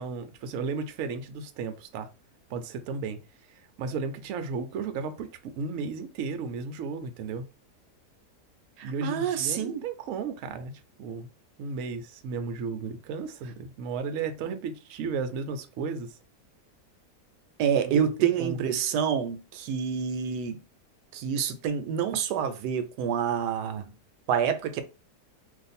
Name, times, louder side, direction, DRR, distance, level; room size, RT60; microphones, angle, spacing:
voice 1, 0.0-2.1 2.5-3.2 3.5-7.5 8.8-10.7 11.0-11.3 11.6-16.2 17.8-18.6, right 5 dB, 70° right, 0.8 m, -34 dB
voice 2, 8.8-9.8 17.6-20.6 21.1-23.9 24.3-24.8, right 8 dB, 85° right, 1.2 m, -27 dB
2.5 x 2.5 x 4.1 m
omnidirectional pair, 1.7 m